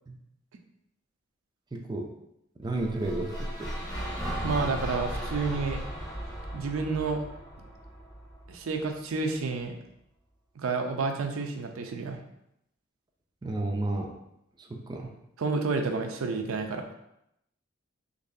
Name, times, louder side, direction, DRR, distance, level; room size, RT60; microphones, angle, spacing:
voice 1, 1.7-2.0 2.6-3.7 13.4-14.1 14.7-15.1, right 2 dB, 20° right, 1 dB, 0.4 m, -32 dB
sound 1, 2.7-8.8, equal, 20° left, 0.8 m, -36 dB
voice 2, 4.4-5.8 6.5-7.2 8.5-9.8 10.6-12.2 15.4-16.9, right 4 dB, 75° right, 4 dB, 0.5 m, -30 dB
3.9 x 3.0 x 2.6 m, 0.80 s
head